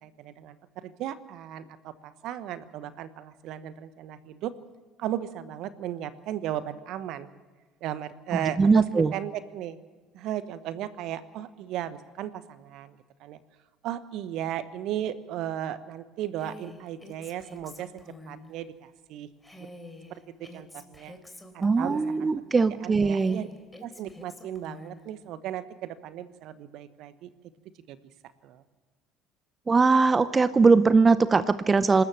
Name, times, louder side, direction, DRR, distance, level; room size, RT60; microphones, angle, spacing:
voice 1, 0.0-4.5 5.0-7.3 7.8-9.8 10.1-13.4 13.8-17.9 18.3-19.3 20.1-20.2 20.5-21.2 21.5-22.3 22.8-23.5 23.8-27.3 27.9-28.0 28.4-28.6, right 11 dB, 60° right, 14 dB, 1.1 m, -36 dB
voice 2, 8.3-9.1 21.6-23.4 29.7-32.0, right 4 dB, 25° right, 15 dB, 0.7 m, -21 dB
Female speech woman speaking, 16.4-18.5 19.4-22.3 23.1-25.0, left 2 dB, 10° left, 3.4 m, -47 dB
26.5 x 13.0 x 7.5 m, 1.4 s
figure-of-eight pair, 60°, 0 cm